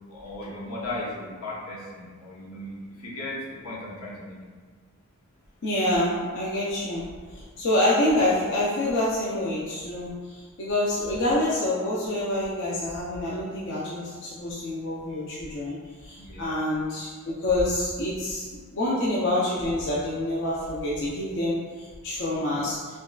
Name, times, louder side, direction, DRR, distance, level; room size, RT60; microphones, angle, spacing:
voice 1, 0.1-4.4 16.2-16.5 22.4-22.6, left 1 dB, 85° left, -6 dB, 1.0 m, -36 dB
voice 2, 5.6-7.0 7.6-15.8 16.0-18.4 18.7-21.6 22.0-22.8, left 1 dB, 55° left, -7 dB, 0.6 m, -26 dB
5.1 x 2.3 x 2.3 m, 1.5 s
head